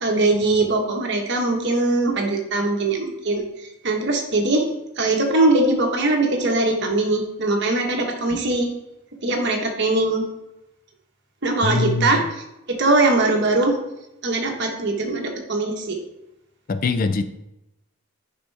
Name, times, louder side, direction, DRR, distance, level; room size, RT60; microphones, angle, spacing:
voice 1, 0.0-4.7 5.0-8.7 9.2-10.2 11.4-13.8 14.2-16.0, right 2 dB, 50° right, 2 dB, 1.3 m, -21 dB
voice 2, 11.6-12.2 16.7-17.2, left 3 dB, 40° left, 11 dB, 0.4 m, -22 dB
9.0 x 5.5 x 3.4 m, 0.90 s
head